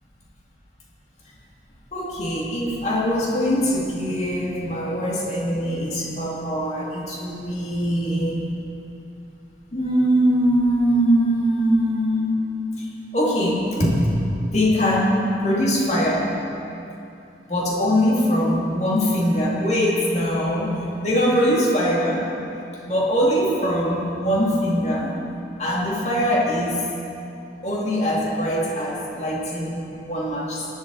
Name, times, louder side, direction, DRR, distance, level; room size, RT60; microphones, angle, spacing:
voice 1, 1.9-8.5 9.7-12.4 12.8-12.9 13.1-14.1 14.4-16.3 17.5-22.3 22.9-25.3 25.6-26.8 27.6-30.7, equal, 40° left, -4 dB, 2.6 m, -22 dB
17.5 x 11.0 x 4.1 m, 2.8 s
head